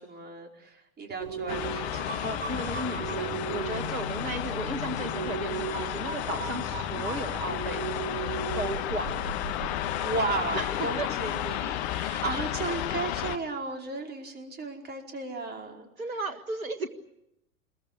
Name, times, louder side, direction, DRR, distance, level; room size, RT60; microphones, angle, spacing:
voice 1, 0.0-2.3 9.8-15.9, right 3 dB, 25° right, 2 dB, 5.0 m, -35 dB
sound 1, 1.2-9.8, right 5 dB, 65° right, 3.5 m, -37 dB
sound 2, 1.5-13.4, left 12 dB, 50° left, 1.5 m, -32 dB
voice 2, 2.0-7.8 8.2-9.3 10.5-11.1 11.4-11.5 16.0-16.9, right 2 dB, 85° right, 8 dB, 1.8 m, -35 dB
27.5 x 22.0 x 8.4 m, 0.85 s
figure-of-eight pair, 95°, 41 cm